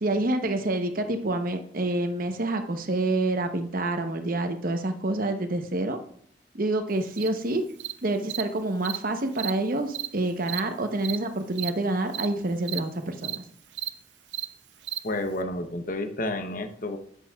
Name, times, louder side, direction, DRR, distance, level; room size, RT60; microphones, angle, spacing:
voice 1, 0.0-6.0 6.5-7.6 8.0-13.4, right 2 dB, 50° right, 7 dB, 0.9 m, -27 dB
Cricket, 7.2-7.3 7.8-7.9 8.3-8.4 8.8-9.0 9.3-9.5 9.9-10.1 10.5-10.6 11.0-11.2 11.5-11.7 12.1-12.3 12.6-12.8 13.2-13.4 13.7-13.9 14.3-14.5 14.8-15.0, right 13 dB, 70° right, 0.5 m, -32 dB
voice 2, 15.0-17.0, left 1 dB, 50° left, 7 dB, 0.8 m, -30 dB
10.0 x 8.3 x 2.3 m, 0.62 s
head